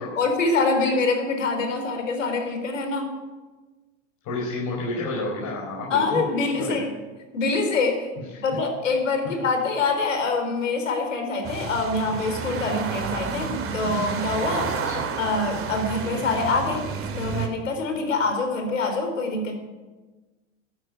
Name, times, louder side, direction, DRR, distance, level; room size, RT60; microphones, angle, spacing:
voice 1, 0.2-3.1 5.9-6.9 7.3-8.1 8.4-14.7 15.2-16.9 17.2-19.5, left 3 dB, 90° left, 5 dB, 4.0 m, -25 dB
voice 2, 4.2-6.2 6.6-6.8 8.3-8.4 14.8-15.1 16.3-16.4, left 2 dB, 50° left, -3 dB, 5.0 m, -30 dB
sound 1, 11.4-17.5, right 6 dB, 35° right, 2.9 m, -30 dB
13.0 x 11.0 x 9.6 m, 1.2 s
hypercardioid pair, 95°, 37 cm